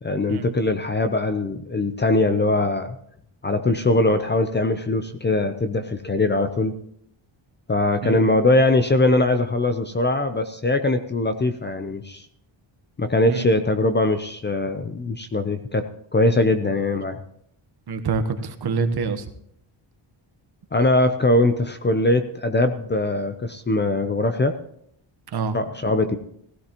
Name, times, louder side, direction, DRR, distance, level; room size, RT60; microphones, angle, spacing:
voice 1, 0.0-3.0 3.4-6.8 7.7-12.2 13.0-17.2 20.7-24.6 25.5-26.2, left 2 dB, 25° left, 9 dB, 0.6 m, -21 dB
voice 2, 17.9-19.3 25.3-25.6, right 5 dB, 50° right, 8 dB, 1.1 m, -26 dB
16.5 x 16.0 x 3.0 m, 0.70 s
wide cardioid pair, 160°, 49 cm